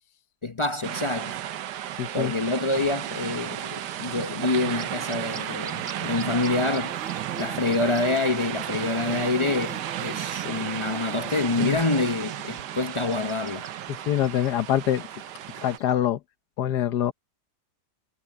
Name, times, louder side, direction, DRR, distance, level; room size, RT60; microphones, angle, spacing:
voice 1, 0.4-1.4 2.1-7.0 7.4-13.7, left 3 dB, 45° left, 0.3 m, -27 dB
sound 1, 0.8-15.8, right 12 dB, 75° right, 1.4 m, -34 dB
voice 2, 2.0-2.3 2.7-2.8 11.6-11.8 13.9-15.1 15.5-16.2 16.6-17.1, left 11 dB, 70° left, 1.4 m, -25 dB
Bird / Buzz, 3.0-15.9, right 4 dB, 50° right, 2.2 m, -44 dB
omnidirectional pair, 1.9 m